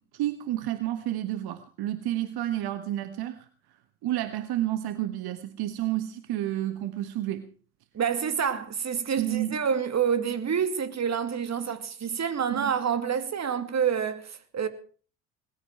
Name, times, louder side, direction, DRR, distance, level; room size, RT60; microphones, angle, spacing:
voice 1, 0.1-3.5 4.0-7.4 9.2-9.6 12.5-12.7, right 13 dB, 65° right, 1.6 m, -30 dB
voice 2, 7.9-14.7, right 7 dB, 40° right, 2.6 m, -28 dB
20.0 x 15.0 x 4.4 m
hypercardioid pair, 60°, 41 cm